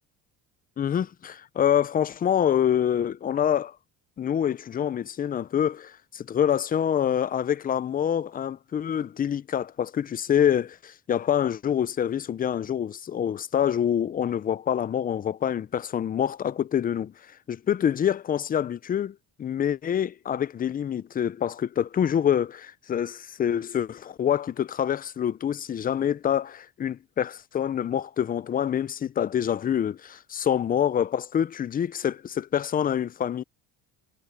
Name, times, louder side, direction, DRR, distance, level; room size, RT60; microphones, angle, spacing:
voice 1, 0.8-3.7 4.2-17.1 17.5-33.4, left 9 dB, 25° left, 0.3 m, -26 dB
cardioid pair, 125°, 41 cm